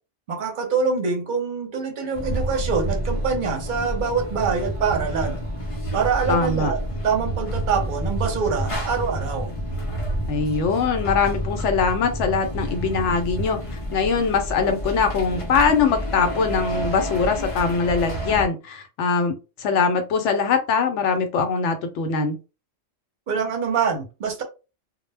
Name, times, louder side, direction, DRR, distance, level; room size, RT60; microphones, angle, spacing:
voice 1, 0.3-5.4 5.9-9.5 23.3-24.4, right 5 dB, 50° right, 0.7 m, -25 dB
sound 1, 2.1-18.5, equal, 40° left, 0.5 m, -29 dB
voice 2, 6.3-6.7 10.3-22.4, left 5 dB, 75° left, 0.9 m, -22 dB
2.1 x 2.1 x 3.2 m
omnidirectional pair, 1.3 m